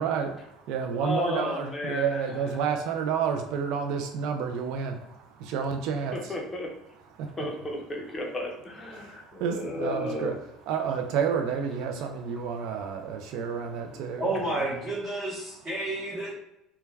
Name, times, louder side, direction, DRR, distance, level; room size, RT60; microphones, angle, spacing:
voice 1, 0.0-6.4 7.1-7.4 8.9-10.3 10.7-14.6, right 7 dB, 65° right, 4 dB, 0.3 m, -30 dB
voice 2, 0.9-2.2 6.1-6.7 7.4-10.3 13.9-14.0, left 1 dB, 20° left, -1 dB, 0.6 m, -33 dB
voice 3, 14.2-16.3, right 2 dB, 20° right, -9 dB, 0.8 m, -30 dB
2.2 x 2.2 x 3.2 m, 0.83 s
cardioid pair, 140°, 0 cm